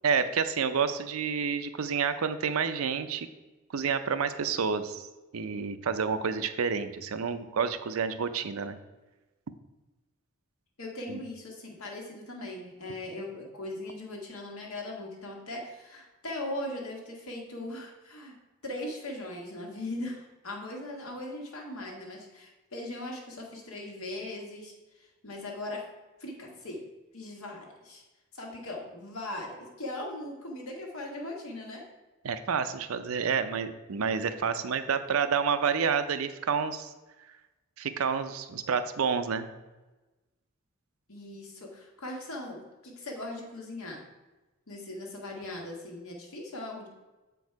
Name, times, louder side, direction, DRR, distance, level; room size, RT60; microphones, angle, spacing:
voice 1, 0.0-3.3 3.7-5.1 5.3-8.8 11.1-11.2 32.2-36.9 37.8-39.5, right 6 dB, 80° right, 11 dB, 0.5 m, -29 dB
voice 2, 10.8-18.3 18.6-24.7 25.2-25.8 26.2-26.8 27.1-28.0 28.3-31.8 41.1-44.0 44.7-46.9, left 1 dB, 85° left, 0 dB, 1.6 m, -39 dB
7.2 x 4.6 x 4.6 m, 1.1 s
head